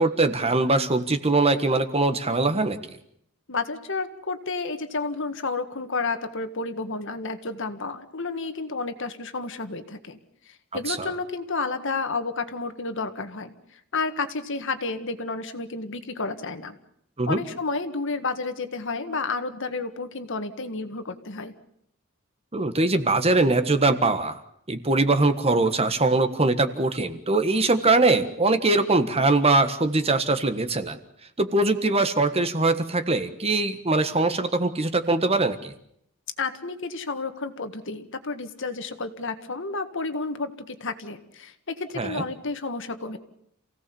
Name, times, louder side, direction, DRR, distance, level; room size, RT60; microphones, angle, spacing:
voice 1, 0.0-2.8 10.9-11.1 17.2-17.4 22.5-24.4 24.7-31.0 31.4-35.7 42.0-42.2, right 2 dB, 30° right, 9 dB, 1.5 m, -22 dB
voice 2, 3.5-10.2 10.7-13.5 13.9-16.7 17.3-21.5 36.4-43.2, left 3 dB, 60° left, 9 dB, 1.9 m, -31 dB
28.0 x 17.0 x 7.1 m, 0.72 s
head